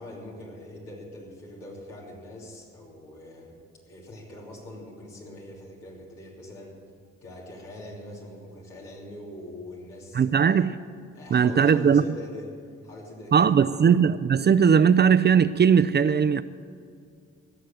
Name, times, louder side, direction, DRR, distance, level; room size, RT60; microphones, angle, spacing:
voice 1, 0.0-3.6 3.9-6.7 7.2-10.6 11.1-13.9, left 1 dB, 85° left, 3.2 m, -43 dB
voice 2, 10.1-10.7 11.3-12.0 13.3-16.4, right 7 dB, 30° right, 0.5 m, -19 dB
17.0 x 6.5 x 9.0 m
hypercardioid pair, 55°, 34 cm